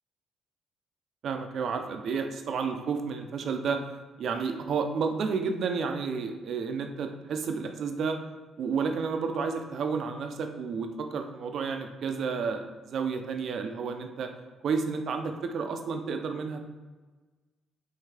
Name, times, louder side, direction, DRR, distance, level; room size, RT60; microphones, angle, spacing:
voice 1, 1.2-3.8 4.2-8.2 8.6-14.3 14.6-16.6, right 5 dB, 65° right, 6 dB, 0.5 m, -31 dB
5.6 x 2.7 x 3.3 m, 1.3 s
cardioid pair, 90°, 0 cm